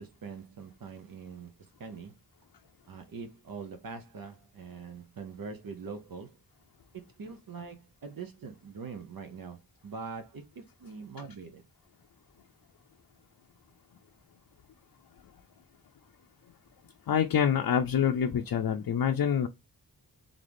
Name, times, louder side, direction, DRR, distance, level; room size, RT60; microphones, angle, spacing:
voice 1, 0.0-2.1 2.9-6.4 7.1-11.7, right 5 dB, 65° right, 0.8 m, -43 dB
voice 2, 17.1-19.5, left 8 dB, 70° left, 0.5 m, -26 dB
3.9 x 3.6 x 3.3 m
wide cardioid pair, 90°, 38 cm